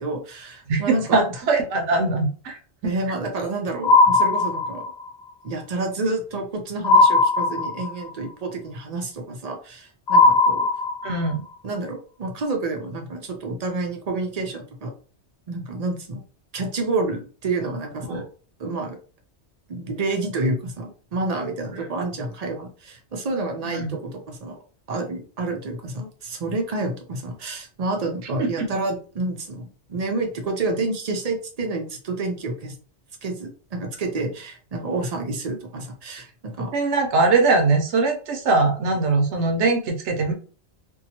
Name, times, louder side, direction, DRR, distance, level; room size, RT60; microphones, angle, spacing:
voice 1, 0.0-1.2 2.8-4.8 5.4-10.7 11.6-14.9 15.5-16.2 16.5-18.2 18.6-19.0 19.7-24.6 24.9-32.7 33.2-36.7, right 2 dB, 45° right, 3 dB, 0.5 m, -29 dB
voice 2, 0.7-2.9 11.0-11.4 18.1-18.2 23.6-24.0 28.4-28.7 36.7-40.3, right 3 dB, 80° right, 4 dB, 1.0 m, -21 dB
sound 1, 3.8-5.1 6.8-8.1 10.1-11.3, left 3 dB, 50° left, 0.7 m, -17 dB
2.7 x 2.2 x 2.7 m, 0.39 s
omnidirectional pair, 1.2 m